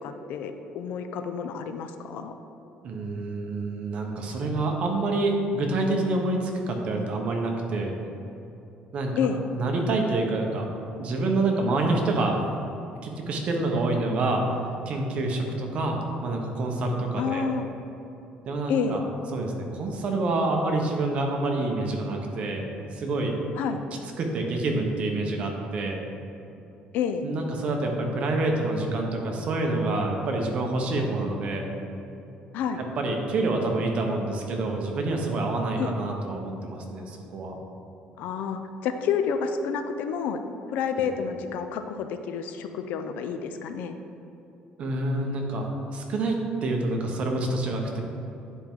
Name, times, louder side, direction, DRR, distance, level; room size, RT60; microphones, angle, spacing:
voice 1, 0.0-2.3 9.2-9.4 17.2-17.7 18.7-19.0 23.6-23.8 26.9-27.3 32.5-32.8 35.8-35.9 38.2-40.4 40.7-44.0, left 6 dB, 70° left, 8 dB, 0.5 m, -29 dB
voice 2, 2.8-7.9 8.9-9.2 9.5-10.7 11.0-12.4 13.0-14.4 14.9-17.5 18.5-19.0 19.3-22.7 22.9-23.3 24.2-26.0 27.2-31.7 32.8-37.5 40.9-41.0 44.8-48.0, right 2 dB, 45° right, 2 dB, 1.0 m, -27 dB
9.8 x 4.5 x 3.7 m, 3.0 s
cardioid pair, 145°, 3 cm